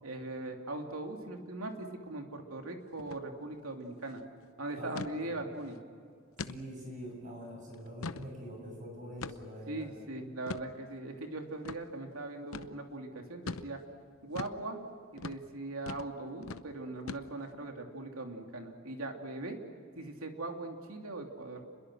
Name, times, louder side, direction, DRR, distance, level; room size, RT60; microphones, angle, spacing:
voice 1, 0.0-4.2 4.6-5.8 9.7-13.8 14.2-14.8 15.1-19.6 19.9-21.6, right 2 dB, 85° right, 3 dB, 3.1 m, -40 dB
sound 1, 3.0-3.2 3.5-3.6 4.0-4.3 5.0-5.2 5.6-5.8 6.4-6.6 7.1-7.2 7.7-8.3 9.2-9.6 10.5-10.7 11.7-11.8 12.5-12.7 13.5-13.7 14.4-14.6 15.2-15.4 15.9-16.1 16.4-16.7 17.1-17.5, left 4 dB, 80° left, 0.8 m, -41 dB
voice 2, 4.8-5.5 6.4-9.9, equal, 40° right, 1 dB, 7.2 m, -45 dB
29.5 x 22.0 x 6.4 m, 2.3 s
head